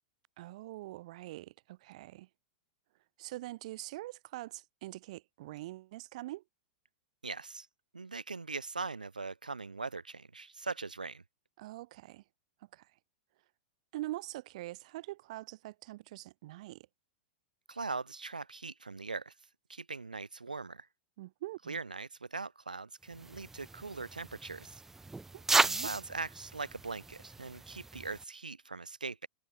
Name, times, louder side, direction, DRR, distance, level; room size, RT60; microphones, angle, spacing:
voice 1, 0.4-2.3 3.2-6.4 11.6-12.2 12.7-12.9 13.9-16.9 21.2-21.8 25.3-25.9, right 17 dB, 60° right, 6.7 m, -44 dB
voice 2, 7.2-7.7 7.9-11.2 17.7-19.3 19.7-20.9 21.7-24.8 25.8-29.3, right 4 dB, 90° right, 3.0 m, -41 dB
sound 1, 23.1-28.2, right 3 dB, 10° right, 0.5 m, -35 dB
hypercardioid pair, 100°, 4 cm